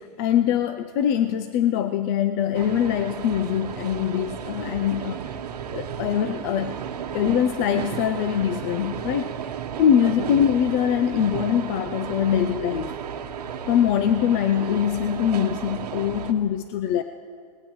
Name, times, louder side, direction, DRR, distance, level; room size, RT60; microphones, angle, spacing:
voice 1, 0.2-5.4 5.7-6.8 7.1-9.3 9.8-12.9 13.7-17.0, left 9 dB, 25° left, 10 dB, 0.3 m, -23 dB
sound 1, 2.5-16.3, right 8 dB, 80° right, 1.1 m, -33 dB
19.5 x 18.0 x 3.1 m, 2.3 s
hypercardioid pair, 155°, 20 cm